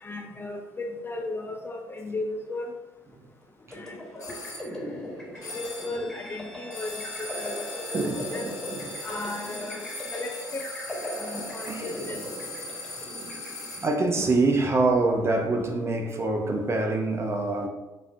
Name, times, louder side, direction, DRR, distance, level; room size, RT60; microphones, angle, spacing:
voice 1, 0.0-2.7 3.7-4.4 5.5-8.5 9.0-10.6 11.2-12.2 15.0-15.3 15.6-15.7, left 2 dB, 25° left, 0.4 m, -36 dB
sound 1, 3.7-14.1, equal, ahead, 1.3 m, -39 dB
sound 2, 4.2-4.7 5.4-6.0 6.7-14.1, left 2 dB, 90° left, 0.5 m, -39 dB
voice 2, 4.8-5.1 7.9-9.0 11.3-11.9 13.2-13.4 13.8-17.7, right 3 dB, 30° right, 0.6 m, -26 dB
Bowed string instrument, 5.3-10.6, equal, 90° right, 0.9 m, -48 dB
5.1 x 2.3 x 2.6 m
figure-of-eight pair, 50°, 9 cm